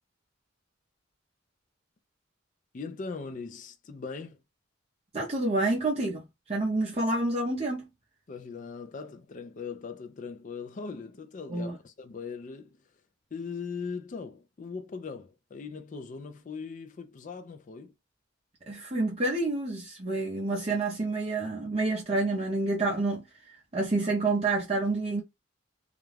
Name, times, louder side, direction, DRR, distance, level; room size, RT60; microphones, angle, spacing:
voice 1, 2.7-4.4 8.3-12.8 13.3-17.9, left 5 dB, 40° left, 0.4 m, -40 dB
voice 2, 5.1-7.9 11.5-11.7 18.7-25.2, right 2 dB, 30° right, 0.5 m, -28 dB
2.4 x 2.2 x 3.1 m
head